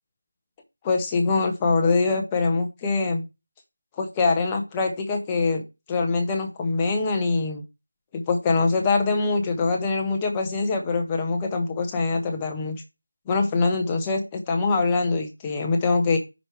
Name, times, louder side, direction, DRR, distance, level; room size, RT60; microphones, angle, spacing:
voice 1, 0.8-3.2 4.0-5.6 5.9-7.6 8.1-12.8 13.3-16.2, left 3 dB, 5° left, 3 dB, 0.6 m, -23 dB
9.9 x 3.3 x 4.5 m, 0.25 s
figure-of-eight pair, 175°, 0 cm